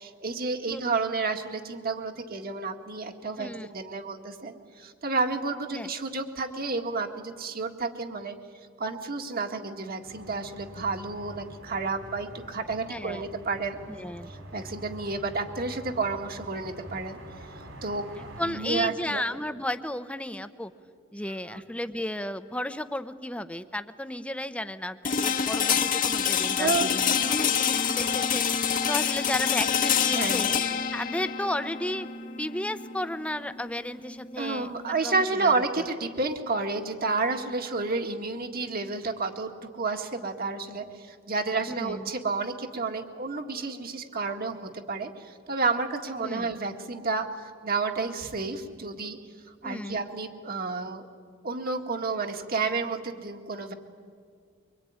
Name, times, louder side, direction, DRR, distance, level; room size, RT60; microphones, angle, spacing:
voice 1, 0.0-8.4 8.8-13.8 14.5-17.2 17.8-18.1 18.4-19.2 26.6-27.4 30.1-30.6 34.4-49.2 49.6-51.1 51.4-53.7, right 3 dB, 45° right, 5 dB, 1.9 m, -30 dB
voice 2, 3.4-3.7 5.7-5.9 12.9-13.2 13.9-14.3 18.2-20.7 21.1-30.5 30.9-32.1 32.4-35.8 41.7-42.1 46.2-46.5 49.6-50.0, left 1 dB, 5° left, 11 dB, 0.8 m, -34 dB
sound 1, 10.0-18.5, right 1 dB, 70° right, 5.3 m, -46 dB
sound 2, 25.0-34.9, left 7 dB, 40° left, 1.2 m, -27 dB
24.0 x 24.0 x 9.7 m, 2.1 s
head